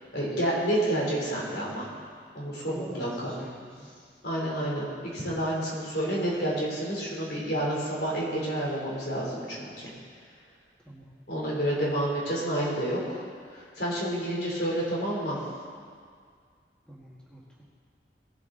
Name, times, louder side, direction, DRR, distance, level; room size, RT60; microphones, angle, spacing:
voice 1, 0.1-1.9 2.3-3.3 4.2-9.9 11.3-13.2 13.5-15.4, right 1 dB, 70° left, -5 dB, 3.4 m, -29 dB
voice 2, 2.6-3.9 10.8-11.2 16.9-17.6, equal, 5° left, -7 dB, 1.7 m, -44 dB
19.0 x 8.2 x 3.9 m, 2.1 s
head